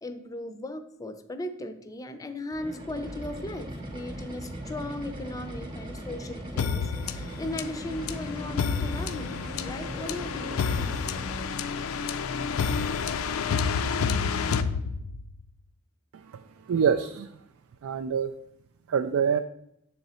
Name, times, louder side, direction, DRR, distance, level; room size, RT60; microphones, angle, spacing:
voice 1, 0.0-10.9, left 1 dB, 15° left, 9 dB, 0.5 m, -37 dB
sound 1, 2.5-11.6, right 1 dB, 25° right, 0.9 m, -39 dB
sound 2, 6.6-15.4, left 5 dB, 75° left, 0.4 m, -29 dB
voice 2, 16.1-17.4 17.8-18.3 18.9-19.4, right 7 dB, 75° right, 9 dB, 0.3 m, -26 dB
6.9 x 3.9 x 4.2 m, 0.78 s
head